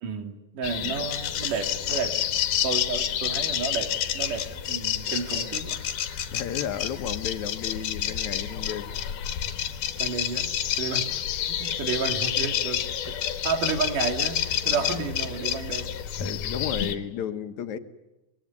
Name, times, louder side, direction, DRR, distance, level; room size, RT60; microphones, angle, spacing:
voice 1, 0.0-2.2 2.6-5.8 10.0-10.5 10.8-11.1 11.5-15.9, right 5 dB, 80° right, 6 dB, 3.9 m, -31 dB
sound 1, 0.6-16.9, left 10 dB, 85° left, 3.0 m, -29 dB
voice 2, 6.3-8.9 14.7-15.0 16.2-17.8, left 9 dB, 70° left, 10 dB, 2.5 m, -33 dB
23.5 x 22.0 x 9.6 m, 0.98 s
omnidirectional pair, 3.6 m